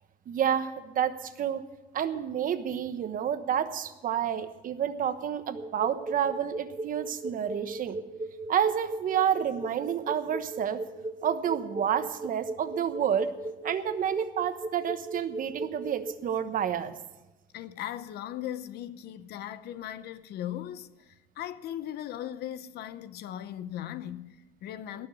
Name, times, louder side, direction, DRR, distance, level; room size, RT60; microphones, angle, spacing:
voice 1, 0.3-1.6 1.9-8.0 8.5-10.8 11.2-13.3 13.6-16.9, right 9 dB, 55° right, 1.1 m, -29 dB
sound 1, 5.5-16.1, right 2 dB, 20° right, 1.0 m, -36 dB
voice 2, 17.5-25.1, left 11 dB, 70° left, 0.8 m, -38 dB
18.5 x 6.3 x 8.4 m
cardioid pair, 110°, 17 cm